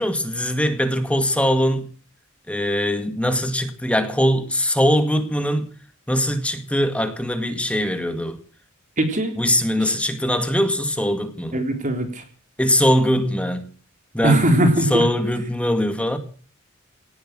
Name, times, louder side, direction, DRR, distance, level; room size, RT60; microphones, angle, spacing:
voice 1, 0.0-1.9 2.5-5.7 6.1-8.4 9.4-11.5 12.6-13.7 14.1-14.4 14.9-16.2, equal, 5° left, 2.0 m, -21 dB
voice 2, 9.0-9.3 9.8-9.9 11.5-12.2 14.2-15.0, right 1 dB, 40° right, 3.7 m, -20 dB
18.0 x 10.5 x 7.5 m
head